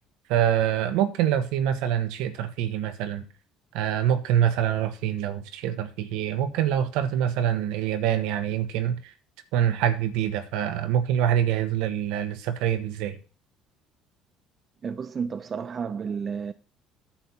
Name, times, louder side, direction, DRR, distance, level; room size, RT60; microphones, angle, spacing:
voice 1, 0.3-3.2 3.7-9.1 9.5-13.2, right 10 dB, 75° right, 1.3 m, -25 dB
voice 2, 14.8-16.5, right 6 dB, 40° right, 0.6 m, -31 dB
10.0 x 4.3 x 7.2 m
hypercardioid pair, 65°, 0 cm